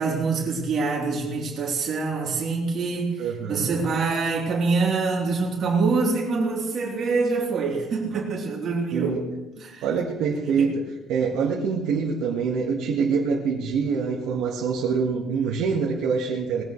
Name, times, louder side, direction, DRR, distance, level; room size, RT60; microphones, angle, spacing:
voice 1, 0.0-9.2 9.6-9.8 10.6-10.7, right 4 dB, 35° right, -3 dB, 3.6 m, -25 dB
voice 2, 3.2-3.8 8.9-9.2 9.8-10.7 11.1-16.6, right 5 dB, 80° right, -3 dB, 1.8 m, -25 dB
20.0 x 16.5 x 3.3 m, 1.1 s
cardioid pair, 180°, 0 cm